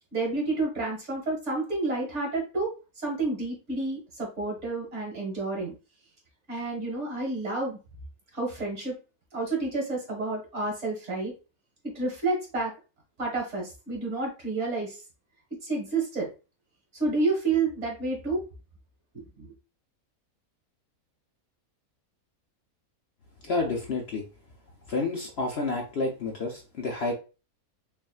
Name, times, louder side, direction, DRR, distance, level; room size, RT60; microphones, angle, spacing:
voice 1, 0.1-5.7 6.5-7.8 8.3-8.9 9.3-11.3 12.0-12.7 13.2-15.0 15.6-16.3 16.9-18.4 19.1-19.5, right 3 dB, 50° right, -1 dB, 1.8 m, -30 dB
voice 2, 23.4-24.2 24.9-27.1, left 3 dB, 55° left, 1 dB, 0.9 m, -29 dB
5.7 x 2.6 x 2.3 m, 0.32 s
omnidirectional pair, 1.5 m